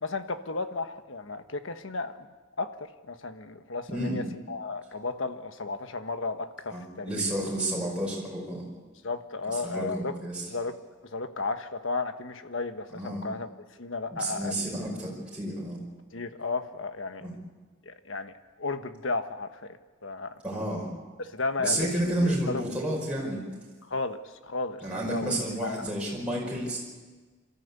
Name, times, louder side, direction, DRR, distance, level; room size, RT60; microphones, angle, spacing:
voice 1, 0.0-2.3 2.6-2.7 3.0-7.2 9.0-10.1 10.5-10.7 11.1-13.5 13.8-14.6 16.1-17.3 17.8-18.3 18.6-19.6 20.0-20.3 21.2-22.6 23.9-24.8 25.1-25.3 25.6-25.8, left 3 dB, 80° left, 9 dB, 1.3 m, -33 dB
voice 2, 6.7-8.6 9.5-10.4 12.9-13.2 14.1-15.8 17.2-17.3 20.4-20.9 21.6-23.4 24.8-26.8, right 1 dB, 5° right, -5 dB, 5.3 m, -31 dB
27.5 x 14.0 x 8.3 m, 1.3 s
head